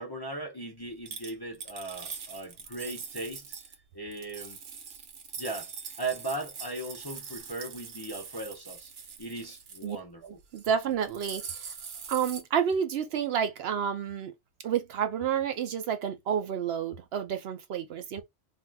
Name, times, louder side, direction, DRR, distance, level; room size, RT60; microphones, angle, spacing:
voice 1, 0.0-3.5 3.9-4.6 5.4-5.7 6.0-8.9 9.2-10.2, right 2 dB, 30° left, 0.5 m, -38 dB
sound 1, 1.1-3.7 4.1-10.0 10.4-10.6 10.9-12.4, right 6 dB, 85° right, 1.1 m, -43 dB
voice 2, 10.2-11.7 12.1-14.3 14.6-18.2, right 8 dB, 65° right, 0.7 m, -30 dB
2.6 x 2.4 x 3.3 m
omnidirectional pair, 1.2 m